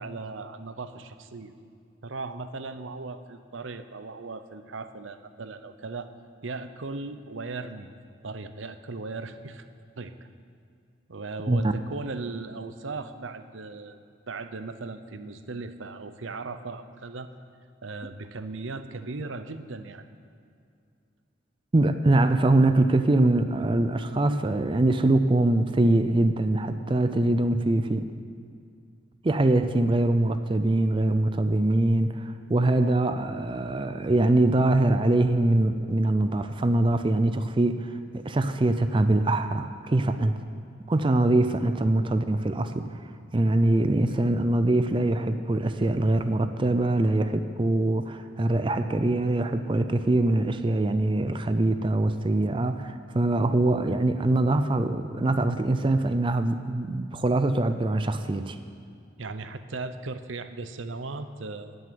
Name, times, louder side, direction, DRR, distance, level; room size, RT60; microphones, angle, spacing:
voice 1, 0.0-1.5 2.0-6.1 6.4-7.9 8.2-9.7 10.0-10.1 11.1-14.0 14.3-17.3 17.8-20.0 59.2-61.8, right 3 dB, 80° right, 10 dB, 0.8 m, -37 dB
voice 2, 21.7-28.1 29.2-40.3 40.9-43.0 43.3-58.6, right 2 dB, 25° right, 10 dB, 0.4 m, -23 dB
18.0 x 6.4 x 6.9 m, 2.4 s
head